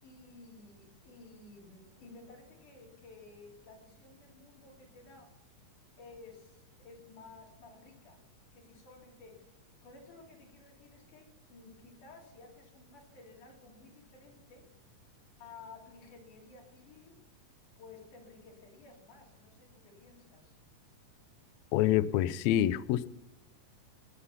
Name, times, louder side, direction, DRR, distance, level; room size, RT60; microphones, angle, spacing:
voice 1, 0.0-5.3 6.0-8.2 8.5-9.5 9.8-14.7 15.4-17.2 17.8-20.6, left 3 dB, 70° left, -1 dB, 4.4 m, -54 dB
voice 2, 21.7-23.1, left 12 dB, 90° left, 15 dB, 1.6 m, -27 dB
17.5 x 7.2 x 5.6 m, 0.90 s
omnidirectional pair, 3.8 m